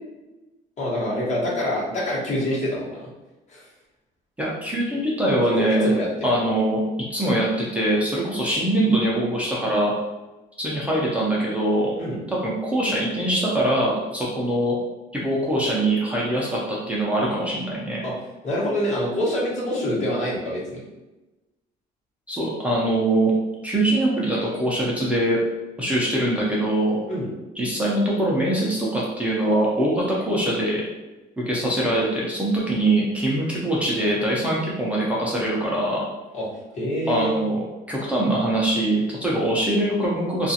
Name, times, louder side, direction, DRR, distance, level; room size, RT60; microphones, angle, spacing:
voice 1, 0.8-3.1 3.5-3.7 5.6-6.3 12.0-12.2 18.0-18.1 18.4-20.8 27.1-27.3 36.3-36.5 36.7-37.4, left 1 dB, 45° left, -6 dB, 1.1 m, -26 dB
voice 2, 4.4-5.9 6.2-6.8 7.1-9.9 10.6-11.9 12.3-14.8 15.1-18.0 22.3-23.3 23.6-25.4 25.8-27.0 27.6-30.8 31.4-36.0 37.1-37.6 37.9-40.5, right 1 dB, 10° right, -6 dB, 0.5 m, -23 dB
2.4 x 2.4 x 2.7 m, 1.1 s
cardioid pair, 110°, 17 cm